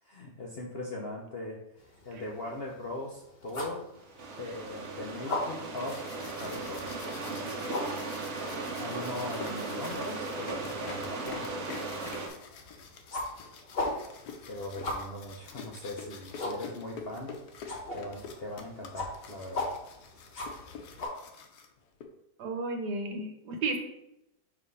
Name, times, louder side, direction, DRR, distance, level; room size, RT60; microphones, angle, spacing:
voice 1, 0.0-1.6 2.0-3.8 4.4-6.1 6.4-7.0 7.3-7.9 8.8-11.5 14.5-17.4 17.9-19.7, left 1 dB, 55° left, -2 dB, 0.6 m, -40 dB
sound 1, 1.8-21.1, left 2 dB, 40° left, 1.1 m, -41 dB
sound 2, 3.9-12.3, right 3 dB, 50° right, 0.9 m, -37 dB
sound 3, 5.8-22.0, left 5 dB, 70° left, 1.2 m, -47 dB
voice 2, 22.4-23.8, right 3 dB, 75° right, 4 dB, 1.4 m, -33 dB
5.2 x 3.4 x 5.3 m, 0.87 s
omnidirectional pair, 1.8 m